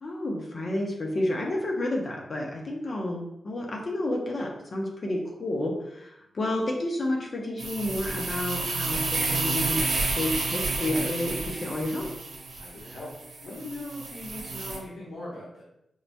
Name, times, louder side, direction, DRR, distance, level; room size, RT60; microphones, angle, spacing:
voice 1, 0.0-12.1, left 1 dB, 50° left, 0 dB, 0.8 m, -30 dB
sound 1, 7.6-14.8, right 3 dB, 80° right, 0.7 m, -30 dB
voice 2, 12.6-13.1 13.4-15.6, left 1 dB, 85° left, -9 dB, 1.1 m, -40 dB
4.7 x 2.6 x 2.3 m, 0.81 s
cardioid pair, 80°, 0 cm